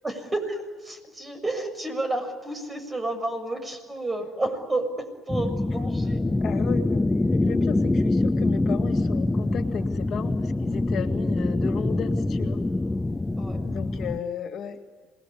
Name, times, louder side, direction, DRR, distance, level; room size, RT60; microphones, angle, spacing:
voice 1, 0.0-6.3 13.4-13.7, right 2 dB, 25° right, 7 dB, 6.8 m, -31 dB
sound 1, 5.3-14.2, left 2 dB, 15° left, 0.8 m, -25 dB
voice 2, 6.4-12.6 13.6-14.8, left 7 dB, 60° left, 5 dB, 2.2 m, -34 dB
27.5 x 20.5 x 10.0 m, 1.4 s
hypercardioid pair, 60°, 0 cm